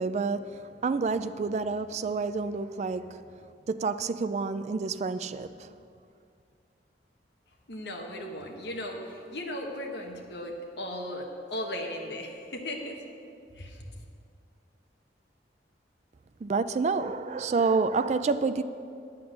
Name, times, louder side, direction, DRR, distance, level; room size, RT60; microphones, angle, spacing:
voice 1, 0.0-3.3 3.7-5.7 16.4-18.6, right 4 dB, 40° right, 0.3 m, -29 dB
voice 2, 7.7-11.3 11.5-13.0 13.5-13.8, left 1 dB, 70° left, 1.4 m, -36 dB
10.0 x 8.5 x 6.5 m
head